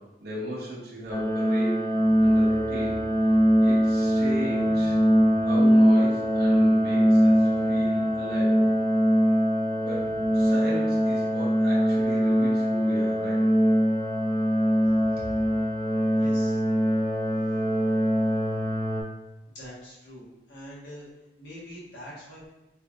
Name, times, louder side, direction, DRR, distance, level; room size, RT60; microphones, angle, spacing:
voice 1, 0.0-1.9 2.2-3.0 3.6-5.0 5.4-8.6 9.7-10.1 10.3-13.5, right 1 dB, 60° right, -5 dB, 0.7 m, -36 dB
sound 1, 1.1-19.0, equal, 15° left, 0.5 m, -22 dB
sound 2, 1.9-8.7, equal, ahead, 1.3 m, -46 dB
voice 2, 9.9-10.5 16.2-16.6 19.5-21.1 21.4-22.5, equal, 85° left, -7 dB, 1.3 m, -44 dB
3.3 x 2.7 x 2.4 m, 0.99 s
head